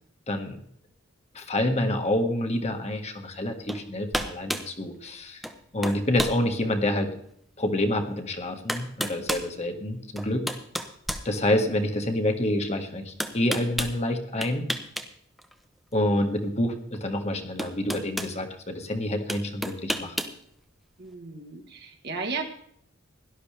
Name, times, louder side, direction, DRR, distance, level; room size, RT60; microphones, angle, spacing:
voice 1, 0.3-0.6 1.3-5.4 5.7-7.1 7.6-10.4 11.2-14.6 15.9-20.2, left 1 dB, 35° left, 5 dB, 1.6 m, -27 dB
sound 1, 3.7-3.8 4.1-4.7 5.4-5.6 5.8-6.4 7.0-7.1 8.2-8.3 8.7-9.5 10.2-11.8 13.2-14.0 14.4-15.1 15.4-15.5 16.9-17.0 17.6-18.3 19.3-20.4, equal, ahead, 0.9 m, -31 dB
voice 2, 21.0-22.4, right 4 dB, 55° right, 3 dB, 1.4 m, -34 dB
17.5 x 11.5 x 3.4 m, 0.67 s
head